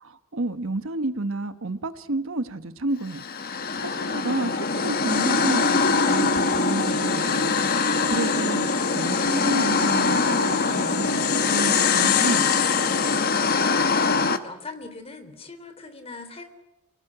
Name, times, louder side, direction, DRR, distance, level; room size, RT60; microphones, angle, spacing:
voice 1, 0.0-12.6, right 2 dB, 70° right, 11 dB, 1.2 m, -31 dB
sound 1, 3.1-14.4, left 4 dB, 45° left, 1.3 m, -23 dB
sound 2, 5.1-13.6, left 11 dB, 90° left, 1.6 m, -30 dB
voice 2, 13.5-16.4, left 3 dB, 30° left, 9 dB, 3.3 m, -41 dB
29.0 x 18.5 x 10.0 m, 0.96 s
head